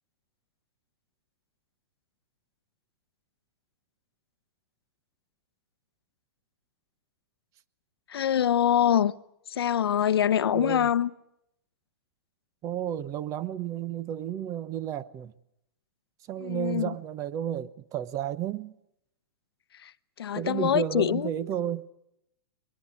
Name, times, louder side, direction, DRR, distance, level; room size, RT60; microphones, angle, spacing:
voice 1, 8.1-9.1 9.5-11.1 16.4-16.9 19.7-19.9 20.2-21.3, left 10 dB, 80° left, 0.9 m, -24 dB
voice 2, 10.5-10.9 12.6-15.3 16.3-18.8 20.3-21.9, right 10 dB, 25° right, 1.0 m, -32 dB
23.0 x 21.5 x 8.5 m
hypercardioid pair, 145°, 13 cm